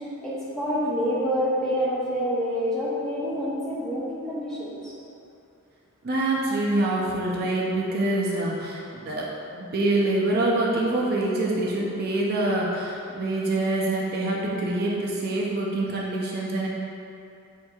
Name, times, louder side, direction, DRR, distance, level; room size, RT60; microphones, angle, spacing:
voice 1, 0.0-4.9, equal, ahead, -8 dB, 0.6 m, -27 dB
voice 2, 6.0-16.7, right 2 dB, 45° right, -4 dB, 0.4 m, -25 dB
5.7 x 2.7 x 2.3 m, 2.6 s
head